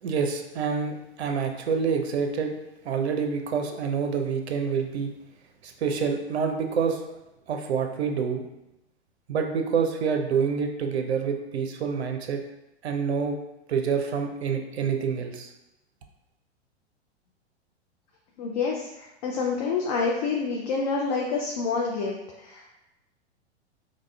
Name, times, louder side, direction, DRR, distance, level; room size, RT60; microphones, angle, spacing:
voice 1, 0.0-2.5 2.8-5.1 5.6-7.2 7.5-8.4 9.3-12.4 12.8-13.4 13.7-15.5, right 6 dB, 70° right, 4 dB, 0.5 m, -27 dB
voice 2, 18.4-22.7, left 4 dB, 35° left, -1 dB, 0.4 m, -28 dB
4.8 x 2.1 x 2.3 m, 0.92 s
figure-of-eight pair, 100°, 34 cm